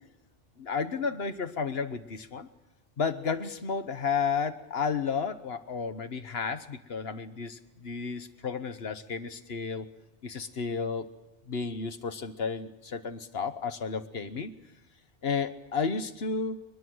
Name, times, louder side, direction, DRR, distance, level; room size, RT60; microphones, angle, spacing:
voice 1, 0.6-2.5 3.0-9.9 10.2-11.1 11.5-14.5 15.2-16.6, left 5 dB, 60° left, 11 dB, 1.3 m, -32 dB
21.0 x 21.0 x 7.8 m, 0.94 s
omnidirectional pair, 1.2 m